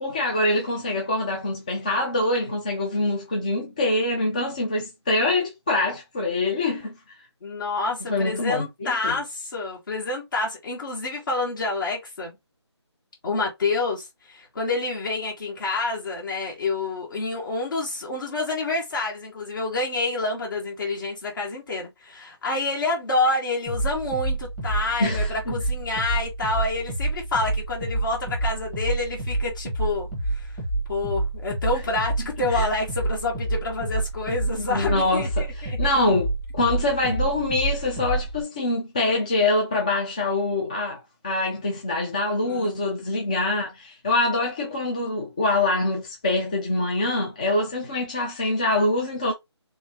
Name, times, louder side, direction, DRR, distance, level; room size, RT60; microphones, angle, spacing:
voice 1, 0.0-6.9 8.1-9.2 25.0-25.5 32.5-32.7 34.7-49.3, left 2 dB, 15° left, 0.4 m, -25 dB
voice 2, 7.4-12.4 13.2-30.6 30.9-35.8 42.4-42.8, left 3 dB, 45° left, 1.4 m, -28 dB
sound 1, 23.7-38.4, right 2 dB, ahead, 0.9 m, -28 dB
3.3 x 3.1 x 2.9 m
figure-of-eight pair, 160°, 15 cm